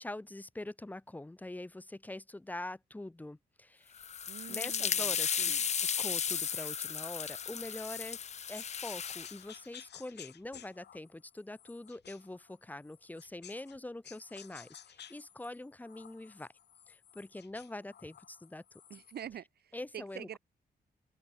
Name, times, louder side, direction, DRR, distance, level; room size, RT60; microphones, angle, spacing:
voice 1, 0.0-4.0 4.5-5.5 6.0-8.2 8.5-16.5 16.9-18.6 19.7-20.3, left 1 dB, 10° left, 1.0 m, -44 dB
sound 1, 4.0-9.4, left 7 dB, 40° left, 0.7 m, -34 dB
voice 2, 4.3-5.6 18.9-20.4, right 10 dB, 65° right, 1.0 m, -46 dB
sound 2, 8.5-13.8 14.0-19.4, left 9 dB, 80° left, 3.2 m, -55 dB
open air
wide cardioid pair, 180°, 17 cm